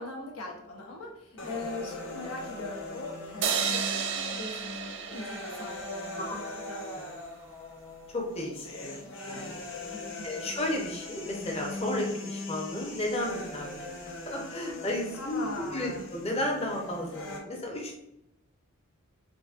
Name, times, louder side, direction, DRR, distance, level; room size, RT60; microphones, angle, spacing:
voice 1, 0.0-6.8 9.9-10.3 15.1-16.1, left 2 dB, 90° left, -1 dB, 1.0 m, -41 dB
sound 1, 1.4-17.4, left 2 dB, 60° left, 0.9 m, -41 dB
sound 2, 3.4-6.7, right 7 dB, 55° right, 0.4 m, -33 dB
voice 2, 8.1-9.6 10.2-15.5 15.7-18.0, left 1 dB, 30° left, 0 dB, 0.8 m, -33 dB
3.9 x 3.6 x 2.4 m, 0.85 s
head